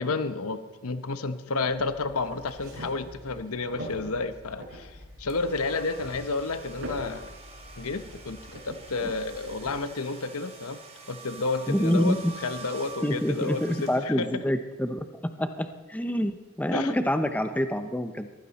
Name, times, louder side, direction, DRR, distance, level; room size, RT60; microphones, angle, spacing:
voice 1, 0.0-7.3 7.8-10.8 11.1-12.2 12.4-14.4 16.7-17.0, left 3 dB, 75° left, 10 dB, 1.0 m, -31 dB
sound 1, 1.6-9.7, equal, 65° right, 7.2 m, -44 dB
sound 2, 5.3-14.4, right 4 dB, 30° right, 2.7 m, -46 dB
voice 2, 11.7-12.3 13.0-18.3, equal, 5° left, 8 dB, 0.7 m, -27 dB
22.0 x 15.5 x 4.2 m, 1.3 s
head